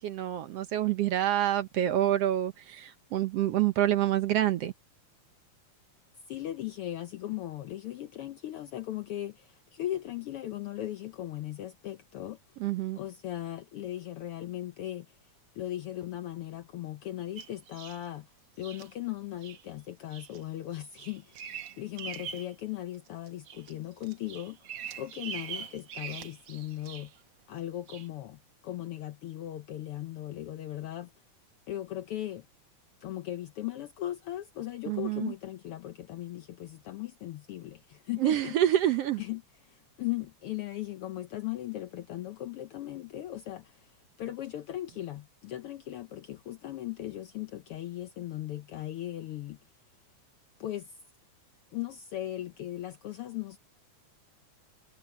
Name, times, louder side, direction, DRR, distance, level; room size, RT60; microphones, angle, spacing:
voice 1, 0.0-4.7 12.6-13.0 34.9-35.3 38.2-39.2, right 12 dB, 65° right, 1.7 m, -27 dB
voice 2, 6.3-12.4 13.0-15.1 15.5-18.3 18.6-27.1 27.5-31.1 31.7-32.4 33.0-38.6 39.2-49.6 50.6-50.9 51.7-53.6, left 13 dB, 90° left, 1.2 m, -38 dB
Bird vocalization bird call bird song, 17.4-18.0 18.6-18.9 19.4-19.6 20.1-20.4 20.7-22.5 22.9-23.7 24.0-27.2 27.9-28.1, right 7 dB, 85° right, 1.0 m, -42 dB
omnidirectional pair, 3.5 m